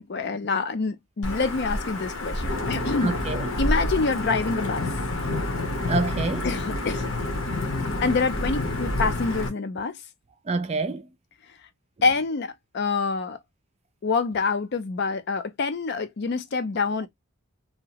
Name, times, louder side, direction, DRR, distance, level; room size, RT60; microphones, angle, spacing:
voice 1, 0.0-3.2 3.6-4.9 6.4-7.1 8.0-10.0 12.0-13.4 14.0-17.1, left 4 dB, 50° left, 0.4 m, -26 dB
Wind / Thunder / Rain, 1.2-9.5, left 1 dB, 75° left, 0.9 m, -28 dB
voice 2, 3.0-3.5 5.9-6.5 7.6-7.9 10.5-11.1, right 3 dB, 30° right, 0.3 m, -28 dB
2.8 x 2.1 x 2.8 m
head